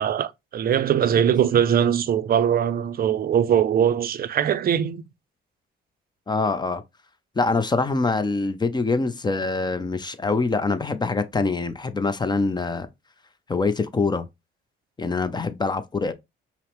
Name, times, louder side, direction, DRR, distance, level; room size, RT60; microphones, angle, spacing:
voice 1, 0.0-5.0, right 9 dB, 50° right, 0.5 m, -21 dB
voice 2, 6.3-6.8 7.4-12.9 13.5-14.3 15.0-16.1, left 3 dB, 20° left, 0.5 m, -24 dB
5.5 x 2.1 x 3.0 m
cardioid pair, 90°, 20 cm